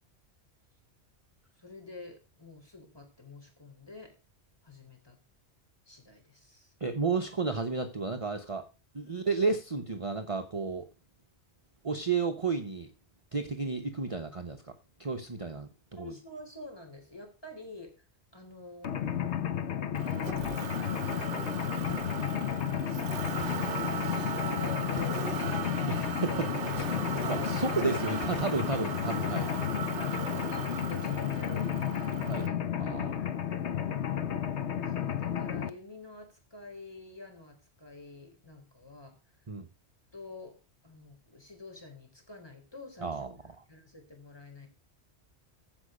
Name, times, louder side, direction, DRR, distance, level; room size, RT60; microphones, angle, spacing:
voice 1, 1.6-4.2 4.6-5.2 5.9-6.7 9.1-9.3 16.0-18.1 18.3-18.9 20.0-21.6 23.7-26.1 27.2-28.0 30.0-32.6 32.9-33.7 34.8-39.2 40.1-43.3 43.7-44.7, left 2 dB, 20° left, 4.0 m, -48 dB
voice 2, 6.8-8.6 8.9-10.9 11.8-12.9 13.3-14.7 15.0-16.1 25.9-26.9 27.3-29.5 32.3-32.5 32.8-33.2 39.5-39.7 43.0-43.3, right 4 dB, 30° right, 1.0 m, -32 dB
Mechanisms, 18.8-35.7, left 9 dB, 80° left, 1.2 m, -32 dB
Motor vehicle (road), 19.9-32.5, right 7 dB, 55° right, 1.0 m, -38 dB
sound 1, 21.9-22.5 23.3-23.9 24.8-25.3 25.7-25.8 26.7-27.4 28.2-28.9, right 5 dB, 10° right, 5.7 m, -50 dB
15.0 x 5.5 x 5.0 m
omnidirectional pair, 1.1 m